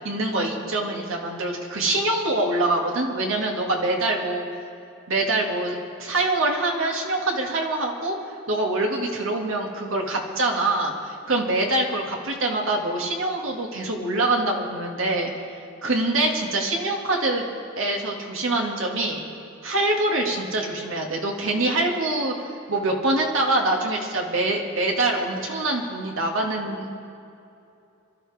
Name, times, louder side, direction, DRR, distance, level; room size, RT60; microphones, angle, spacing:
voice 1, 0.0-4.5 5.1-8.2 8.5-15.3 15.8-17.4 17.8-19.2 19.6-22.3 22.7-26.9, right 2 dB, 85° right, 0 dB, 2.2 m, -24 dB
27.0 x 12.0 x 3.6 m, 2.6 s
head